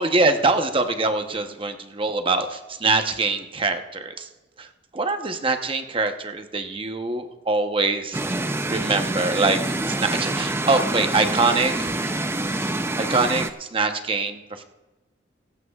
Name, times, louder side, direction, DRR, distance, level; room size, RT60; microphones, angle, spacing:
voice 1, 0.0-4.3 4.6-4.7 4.9-8.4 8.7-12.2 12.5-12.7 13.0-14.6, right 3 dB, 30° right, 6 dB, 0.9 m, -24 dB
sound 1, 8.1-13.5, right 2 dB, 15° right, 0.5 m, -26 dB
18.0 x 16.0 x 2.4 m, 1.1 s
head